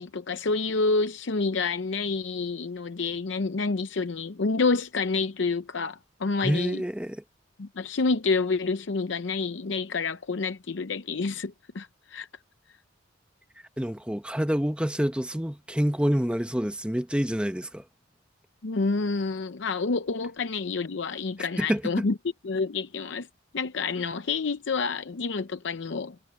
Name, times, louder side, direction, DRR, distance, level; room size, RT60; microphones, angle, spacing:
voice 1, 0.0-6.8 7.6-12.3 18.6-22.1 22.4-23.3 23.5-26.1, left 4 dB, 65° left, 0.6 m, -28 dB
voice 2, 6.4-7.2 13.8-17.8 21.4-22.0, equal, 5° right, 1.0 m, -27 dB
head